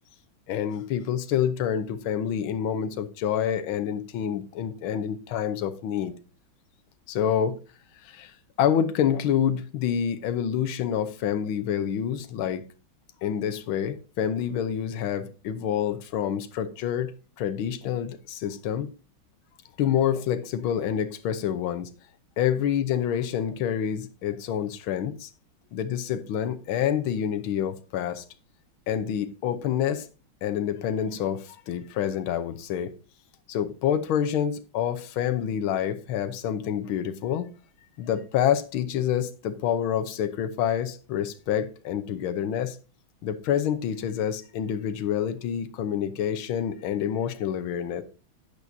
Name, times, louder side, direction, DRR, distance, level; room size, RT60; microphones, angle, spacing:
voice 1, 0.5-6.1 7.1-7.5 8.0-12.6 13.2-17.1 17.4-18.9 19.8-21.9 22.4-25.3 25.7-28.2 28.9-30.1 30.4-32.9 33.5-37.5 38.0-42.8 43.2-48.0, left 9 dB, 85° left, 1.7 m, -27 dB
11.0 x 8.4 x 2.7 m
omnidirectional pair, 2.2 m